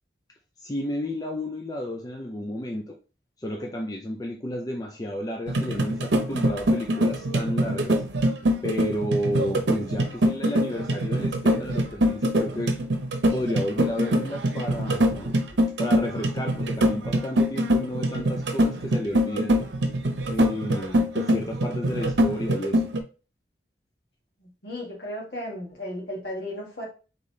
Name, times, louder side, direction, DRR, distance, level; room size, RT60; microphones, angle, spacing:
voice 1, 0.6-3.0 3.4-8.0 8.6-12.8 13.3-15.4 15.8-19.6 20.2-22.9, equal, 20° left, 0.4 m, -32 dB
sound 1, 5.5-23.0, equal, 80° right, 0.8 m, -24 dB
voice 2, 24.6-26.9, left 1 dB, 60° left, 1.8 m, -34 dB
4.1 x 3.7 x 3.1 m
head